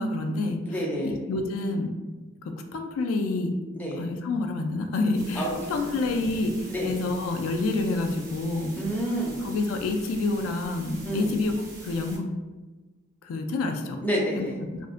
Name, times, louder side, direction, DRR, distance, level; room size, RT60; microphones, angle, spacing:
voice 1, 0.0-0.6 1.0-1.9 2.4-3.5 4.0-8.7 9.4-11.5 11.8-12.3 13.2-14.0 14.4-14.5, left 2 dB, 85° left, 5 dB, 0.3 m, -28 dB
voice 2, 0.7-1.2 3.7-4.0 5.3-5.9 6.7-7.0 8.7-9.4 11.0-11.4 14.0-14.6, right 1 dB, 10° left, -4 dB, 0.4 m, -29 dB
sound 1, 5.1-12.2, right 2 dB, 40° right, 0.7 m, -45 dB
2.5 x 2.1 x 2.4 m, 1.2 s
head